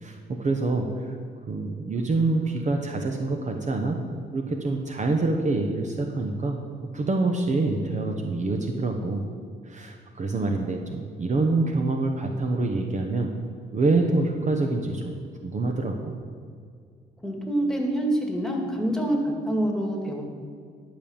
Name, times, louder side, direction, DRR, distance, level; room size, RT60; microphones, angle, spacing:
voice 1, 0.0-0.9 1.5-4.0 4.3-6.6 6.9-9.2 9.7-13.3 13.7-15.1 15.4-16.1, right 3 dB, 40° right, 3 dB, 1.0 m, -26 dB
voice 2, 17.2-20.2, right 1 dB, 5° left, 0 dB, 2.1 m, -26 dB
12.0 x 5.2 x 7.2 m, 2.2 s
cardioid pair, 90°, 20 cm